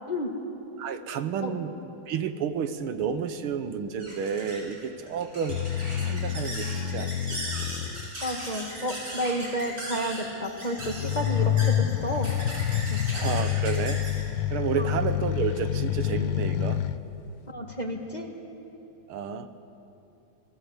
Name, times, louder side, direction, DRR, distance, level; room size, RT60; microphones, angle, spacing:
voice 1, 0.8-5.6 6.0-7.4 13.1-14.0 14.5-16.8 19.1-19.5, right 7 dB, 80° right, 10 dB, 1.9 m, -31 dB
sound 1, 2.9-15.8, right 1 dB, 40° right, 7.4 m, -39 dB
sound 2, 5.5-8.1 10.8-17.0, left 11 dB, 70° left, 1.4 m, -28 dB
voice 2, 8.2-12.3 12.9-13.0 14.8-14.9 17.5-18.3, equal, 20° left, 2 dB, 1.8 m, -31 dB
28.0 x 21.0 x 8.1 m, 2.9 s
omnidirectional pair, 2.4 m